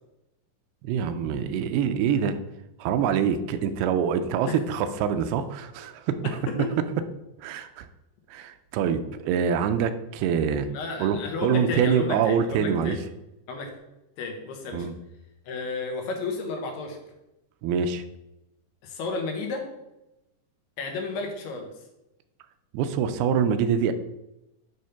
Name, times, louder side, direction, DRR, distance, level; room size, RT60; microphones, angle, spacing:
voice 1, 0.8-2.4 2.8-6.2 7.4-7.9 8.3-10.7 11.0-13.0 14.7-14.9 17.6-18.0 22.7-23.9, right 7 dB, 85° right, 9 dB, 2.5 m, -25 dB
voice 2, 6.2-6.7 10.7-13.0 13.5-13.7 14.2-14.9 15.5-17.0 18.8-19.7 20.8-21.7, left 3 dB, 90° left, 2 dB, 3.3 m, -32 dB
9.4 x 3.5 x 5.7 m, 0.93 s
omnidirectional pair, 4.5 m